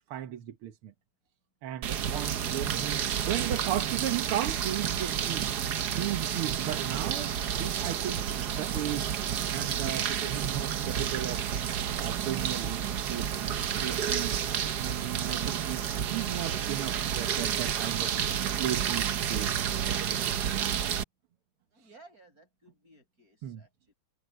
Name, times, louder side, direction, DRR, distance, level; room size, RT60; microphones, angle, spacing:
voice 1, 0.1-0.9 1.6-5.5 6.0-7.3 7.6-9.1 9.5-11.6 12.0-13.6 13.8-14.3 14.8-19.5 20.1-20.4 23.4-23.6, right 12 dB, 90° right, 2.0 m, -36 dB
sound 1, 1.8-21.0, right 9 dB, 55° right, 1.3 m, -30 dB
voice 2, 21.7-23.9, right 2 dB, 40° right, 8.5 m, -57 dB
omnidirectional pair, 2.3 m